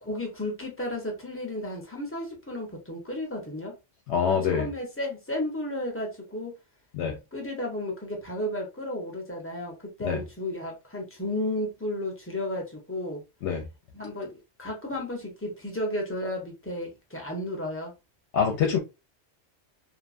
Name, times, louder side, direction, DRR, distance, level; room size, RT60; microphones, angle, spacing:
voice 1, 0.0-3.7 4.3-6.5 7.3-13.2 13.9-17.9, left 1 dB, 15° left, 0.7 m, -33 dB
voice 2, 4.1-4.7 6.9-7.2 10.0-10.2 13.4-13.7 18.3-18.8, left 7 dB, 70° left, 0.8 m, -25 dB
2.7 x 2.2 x 2.5 m
omnidirectional pair, 1.3 m